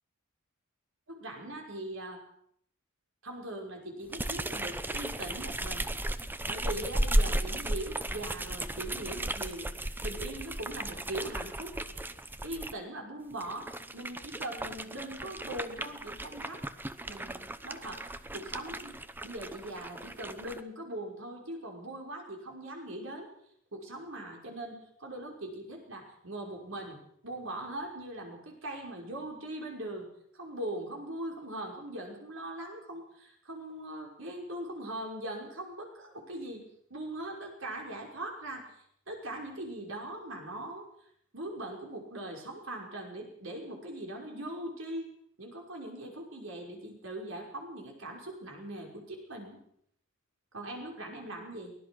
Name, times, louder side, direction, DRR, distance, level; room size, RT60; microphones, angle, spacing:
voice 1, 1.1-2.2 3.2-5.9 6.5-9.7 10.0-11.7 12.4-13.7 13.9-16.7 17.0-18.0 18.3-19.0 19.2-23.3 23.7-30.1 30.3-36.6 36.9-40.8 41.3-45.1 45.4-49.6 50.5-51.8, right 1 dB, 65° right, 1 dB, 5.6 m, -41 dB
sound 1, 4.1-12.7 13.3-20.6, right 1 dB, 10° right, 0.8 m, -35 dB
24.0 x 18.0 x 6.3 m, 0.69 s
head